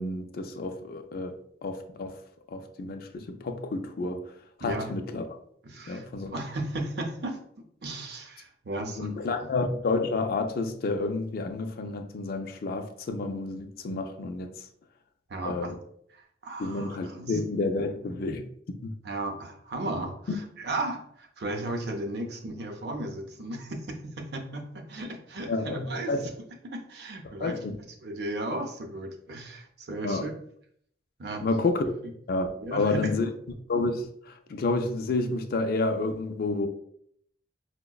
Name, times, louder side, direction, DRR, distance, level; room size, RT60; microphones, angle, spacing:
voice 1, 0.0-1.4 1.6-2.2 2.5-4.2 4.6-5.3 5.9-6.3 8.8-14.5 15.4-15.8 16.6-18.9 20.3-20.4 25.5-26.3 27.4-27.7 30.0-30.3 31.4-31.9 32.3-33.3 33.7-36.7, left 3 dB, 55° left, 0.4 m, -30 dB
voice 2, 4.6-4.9 5.6-7.4 7.8-9.1 15.3-15.7 16.1-17.4 19.0-20.3 20.6-26.1 26.7-27.6 28.0-30.3 31.2-31.4 32.0-32.1 32.6-33.1, right 2 dB, 65° right, 0.6 m, -35 dB
4.6 x 2.1 x 2.3 m
head